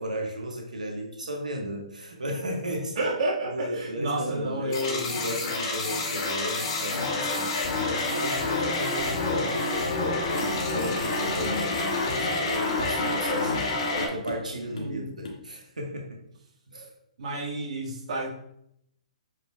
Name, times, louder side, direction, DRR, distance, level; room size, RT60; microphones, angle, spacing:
voice 1, 0.0-3.0 3.5-13.7 13.9-16.2 16.7-16.9, right 1 dB, 85° right, 1 dB, 1.2 m, -34 dB
voice 2, 3.0-5.1 14.7-15.1 17.2-18.3, right 1 dB, 60° right, -1 dB, 1.7 m, -30 dB
sound 1, 4.7-14.1, left 3 dB, 45° left, 2.2 m, -28 dB
sound 2, 10.4-10.6 10.9-11.1 11.4-12.4 12.7-13.2 13.5-13.7 14.0-14.5 14.8-15.0 15.2-15.4, left 3 dB, 70° left, 1.8 m, -39 dB
8.1 x 5.0 x 2.3 m, 0.74 s
figure-of-eight pair, 125°, 4 cm